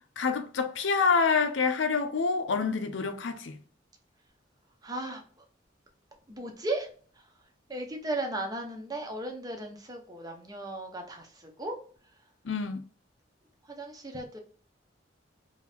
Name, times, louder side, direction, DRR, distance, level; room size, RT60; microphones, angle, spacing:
voice 1, 0.2-3.6 12.5-12.8, left 5 dB, 80° left, 0.6 m, -27 dB
voice 2, 4.8-5.2 6.3-6.9 7.7-11.3 11.6-11.8 13.8-14.4, right 2 dB, 20° right, 0.7 m, -35 dB
3.0 x 2.7 x 3.3 m
head